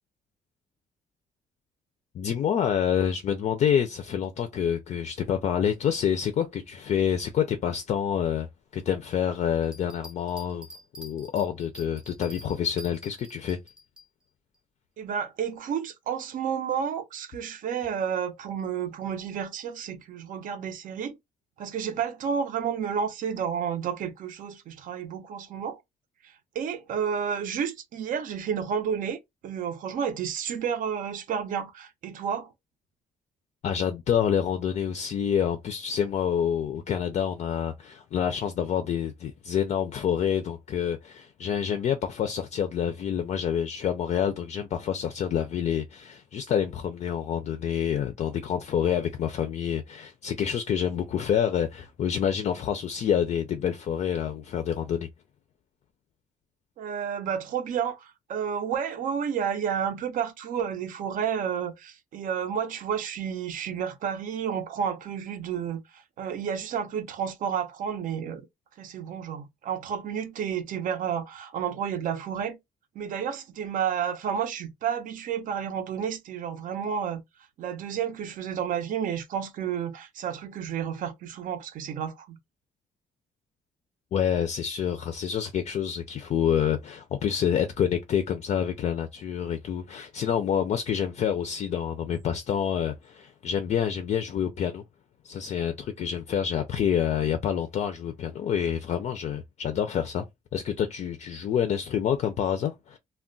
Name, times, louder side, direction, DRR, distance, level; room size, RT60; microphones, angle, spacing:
voice 1, 2.1-8.5 8.7-10.7 11.0-13.6 33.6-55.1 84.1-94.8 95.2-100.2 100.5-103.0, left 8 dB, 50° left, 0.4 m, -27 dB
sound 1, 9.6-14.1, equal, 5° right, 0.6 m, -47 dB
voice 2, 15.0-21.2 21.6-25.8 26.5-32.5 56.8-68.5 68.8-72.6 72.9-77.2 77.6-82.4, right 8 dB, 65° right, 0.6 m, -31 dB
2.3 x 2.1 x 3.7 m
cardioid pair, 160°, 15 cm